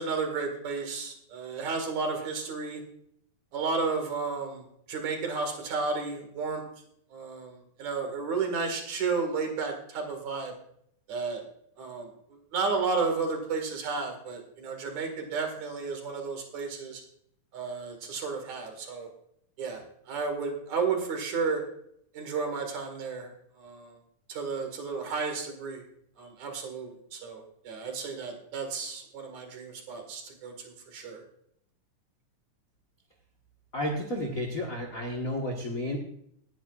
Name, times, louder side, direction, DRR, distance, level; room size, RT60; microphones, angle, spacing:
voice 1, 0.0-2.8 3.5-6.6 7.1-10.5 11.1-11.4 11.8-17.0 17.5-19.1 19.6-21.6 22.1-24.0 24.3-25.8 26.2-31.2, right 4 dB, 60° right, 4 dB, 3.2 m, -32 dB
voice 2, 33.7-36.0, left 1 dB, 50° left, 1 dB, 1.0 m, -32 dB
18.0 x 11.0 x 2.5 m, 0.70 s
omnidirectional pair, 3.9 m